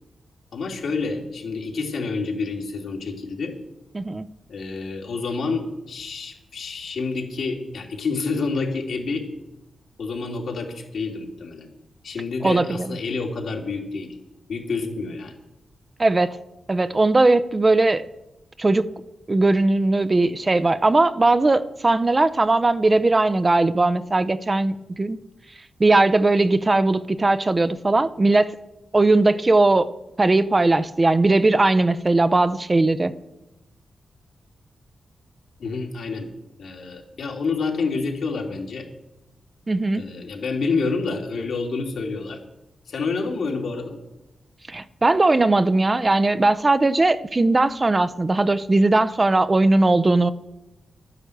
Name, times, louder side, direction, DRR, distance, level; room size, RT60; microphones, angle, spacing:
voice 1, 0.5-3.5 4.5-9.3 10.0-11.7 12.0-14.2 14.5-15.4 35.6-36.3 36.6-38.9 39.9-42.4 42.9-44.0, left 4 dB, 75° left, 1 dB, 2.9 m, -28 dB
voice 2, 3.9-4.3 12.4-12.9 16.0-16.4 16.7-18.0 18.6-18.9 19.3-25.2 25.8-28.6 28.9-29.9 30.2-33.1 39.7-40.0 44.7-50.3, right 2 dB, 25° right, 14 dB, 0.5 m, -19 dB
12.0 x 9.8 x 8.0 m, 0.96 s
wide cardioid pair, 125°, 0 cm